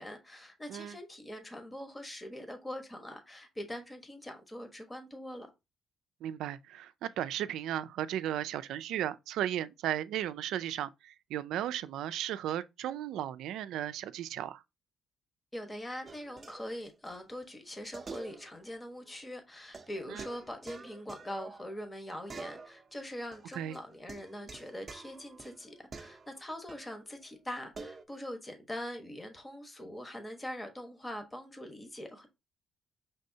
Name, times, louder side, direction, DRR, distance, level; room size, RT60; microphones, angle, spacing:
voice 1, 0.0-5.5 15.5-32.3, left 1 dB, 15° left, 1.2 m, -43 dB
voice 2, 6.2-14.6 20.1-20.2 23.5-23.8, right 11 dB, 85° right, 0.3 m, -35 dB
sound 1, 16.1-17.2 17.4-17.5 17.9-18.7 19.0-19.1 19.7-22.0 22.3-23.0 23.3-27.0 27.7-28.0, right 4 dB, 35° right, 0.6 m, -48 dB
5.3 x 3.4 x 2.7 m
cardioid pair, 90°, 0 cm